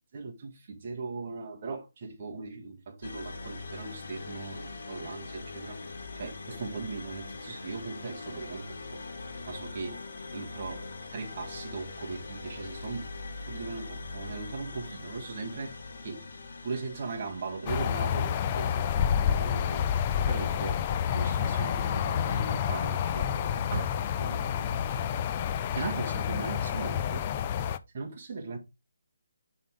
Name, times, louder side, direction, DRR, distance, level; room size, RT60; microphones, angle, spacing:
voice 1, 0.1-5.8 6.2-9.0 9.5-10.0 10.3-13.1 13.4-15.7 16.0-16.3 16.6-20.9 21.1-27.3 27.9-28.6, right 4 dB, 35° right, 1.8 m, -39 dB
sound 1, 3.0-20.8, left 3 dB, 60° left, 1.6 m, -43 dB
sound 2, 17.7-27.8, left 8 dB, 25° left, 0.4 m, -29 dB
9.3 x 3.8 x 3.4 m
hypercardioid pair, 170°, 0 cm